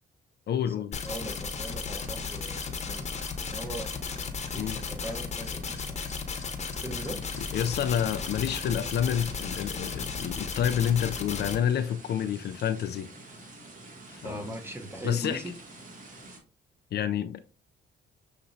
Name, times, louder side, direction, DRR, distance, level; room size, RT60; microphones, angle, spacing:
voice 1, 0.5-1.0 4.5-4.8 7.5-13.1 14.1-14.4 15.0-15.4 16.9-17.4, left 9 dB, 55° left, 0.4 m, -28 dB
sound 1, 0.9-11.6, left 5 dB, 35° left, 0.9 m, -35 dB
voice 2, 1.0-3.2 3.5-6.0 6.3-7.2 14.2-15.5, right 1 dB, 10° right, 0.9 m, -40 dB
sound 2, 7.3-16.4, right 2 dB, 40° right, 1.3 m, -48 dB
6.6 x 2.9 x 2.6 m
cardioid pair, 90°, 20 cm